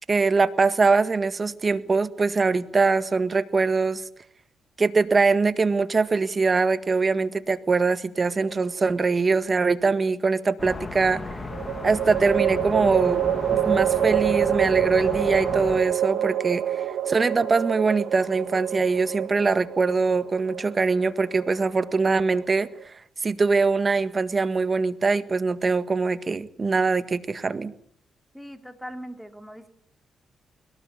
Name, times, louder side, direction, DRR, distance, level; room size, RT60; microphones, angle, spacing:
voice 1, 0.1-4.0 4.8-11.2 11.8-13.2 13.5-22.7 23.2-27.7, right 4 dB, 40° right, 13 dB, 1.7 m, -23 dB
sound 1, 8.4-9.2 11.5-22.8, right 10 dB, 75° right, 2.0 m, -27 dB
sound 2, 10.6-15.8, left 3 dB, 30° left, 3.3 m, -35 dB
voice 2, 28.3-29.7, equal, ahead, 7 dB, 3.6 m, -40 dB
22.0 x 17.0 x 8.5 m, 0.65 s
supercardioid pair, 60°, 0 cm